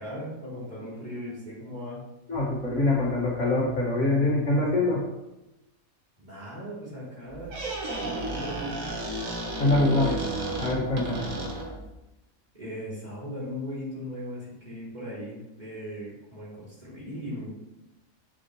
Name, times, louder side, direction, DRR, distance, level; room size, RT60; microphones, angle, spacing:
voice 1, 0.0-2.0 6.2-7.6 8.0-9.0 9.6-10.2 11.1-11.4 12.5-17.5, equal, 30° right, -7 dB, 3.6 m, -38 dB
voice 2, 2.3-5.0 9.6-10.1 10.6-11.3, left 2 dB, 55° left, -5 dB, 2.4 m, -24 dB
Squeak, 7.3-11.9, right 1 dB, 65° right, 1.8 m, -32 dB
9.7 x 7.0 x 3.2 m, 0.96 s
omnidirectional pair, 1.5 m